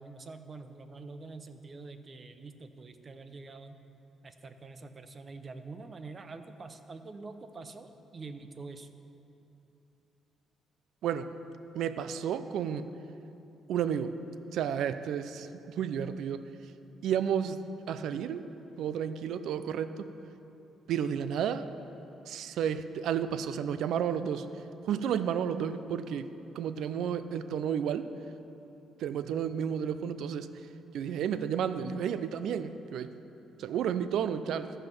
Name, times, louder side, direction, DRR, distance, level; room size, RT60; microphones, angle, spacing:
voice 1, 0.0-3.8 4.2-8.9 29.1-29.4, right 3 dB, 40° right, 9 dB, 0.7 m, -46 dB
voice 2, 11.7-12.9 13.7-14.2 14.5-16.5 17.0-17.6 17.9-18.5 18.8-20.1 20.9-21.7 22.3-24.5 24.9-26.3 26.6-28.1 29.0-30.5 30.9-33.1 33.6-34.7, right 8 dB, 80° right, 12 dB, 0.4 m, -32 dB
14.5 x 5.6 x 6.0 m, 2.9 s
cardioid pair, 90°, 0 cm